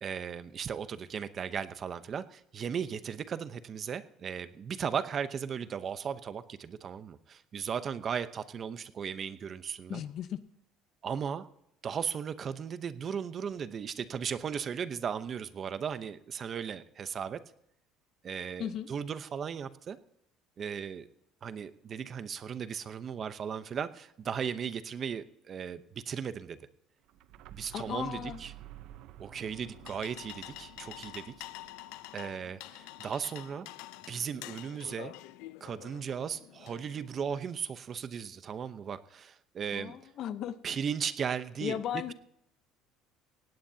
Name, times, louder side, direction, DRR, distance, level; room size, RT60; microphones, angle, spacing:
voice 1, 0.0-10.0 11.0-11.5 11.8-17.4 18.2-20.0 20.6-21.1 21.4-26.6 27.5-28.5 29.2-31.5 32.1-33.7 34.1-35.1 35.6-39.9 40.6-41.8, right 7 dB, 35° right, 13 dB, 0.8 m, -36 dB
voice 2, 9.9-10.4 18.6-18.9 27.7-28.4 39.7-40.6 41.6-42.1, left 10 dB, 50° left, 12 dB, 0.9 m, -36 dB
sound 1, 27.0-32.8, right 12 dB, 65° right, 0.8 m, -52 dB
sound 2, 29.4-37.4, left 16 dB, 85° left, 0.6 m, -48 dB
18.0 x 17.5 x 2.8 m, 0.76 s
cardioid pair, 130°, 0 cm